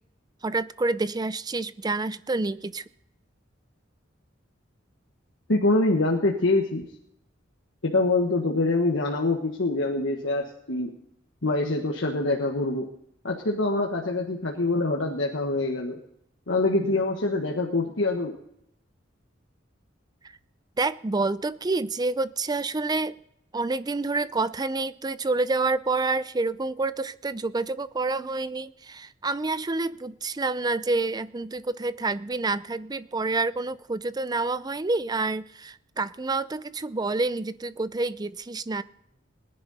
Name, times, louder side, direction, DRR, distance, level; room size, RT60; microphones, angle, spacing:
voice 1, 0.4-2.8 20.8-23.1 23.5-38.8, right 3 dB, 20° right, 16 dB, 0.5 m, -28 dB
voice 2, 5.5-6.8 7.8-10.9 11.4-12.9 13.2-16.0 16.5-18.3, left 2 dB, 75° left, 0 dB, 1.4 m, -25 dB
20.5 x 10.5 x 4.1 m, 0.75 s
head